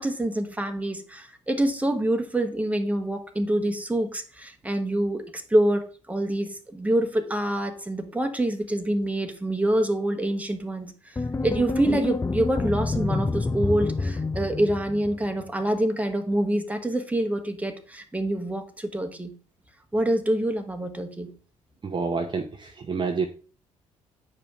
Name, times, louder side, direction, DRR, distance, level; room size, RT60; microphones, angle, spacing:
voice 1, 0.0-19.3 19.9-21.3, right 1 dB, 10° right, 6 dB, 1.3 m, -26 dB
sound 1, 11.2-15.4, left 3 dB, 15° left, 0.6 m, -28 dB
voice 2, 21.8-23.3, right 4 dB, 30° right, 4 dB, 0.8 m, -28 dB
8.7 x 5.0 x 3.6 m, 0.38 s
figure-of-eight pair, 45°, 17 cm